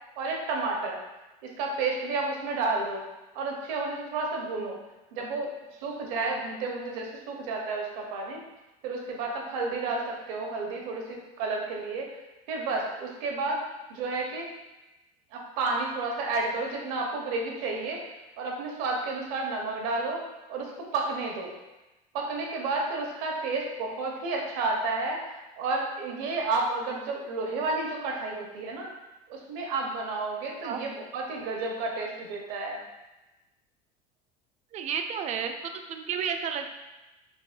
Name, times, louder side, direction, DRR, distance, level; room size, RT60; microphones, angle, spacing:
voice 1, 0.2-1.0 1.4-3.0 3.3-4.8 5.1-5.5 5.8-8.4 8.8-12.1 12.5-13.6 13.9-14.5 15.3-18.0 18.4-20.2 20.5-21.5 22.1-28.9 29.3-32.8, right 3 dB, 75° right, 0 dB, 0.9 m, -31 dB
voice 2, 34.7-36.7, right 7 dB, 35° right, 6 dB, 0.4 m, -32 dB
5.3 x 2.1 x 2.5 m, 1.0 s
supercardioid pair, 115°, 20 cm